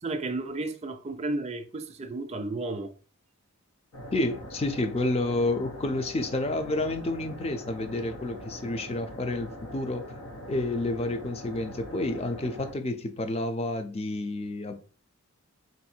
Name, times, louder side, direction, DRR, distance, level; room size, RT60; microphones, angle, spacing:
voice 1, 0.0-2.9, right 2 dB, 30° right, 0.4 m, -33 dB
sound 1, 3.9-12.7, equal, 85° left, 1.1 m, -42 dB
voice 2, 4.1-10.1 10.5-14.8, left 2 dB, 25° left, 0.5 m, -30 dB
3.9 x 2.7 x 4.3 m
head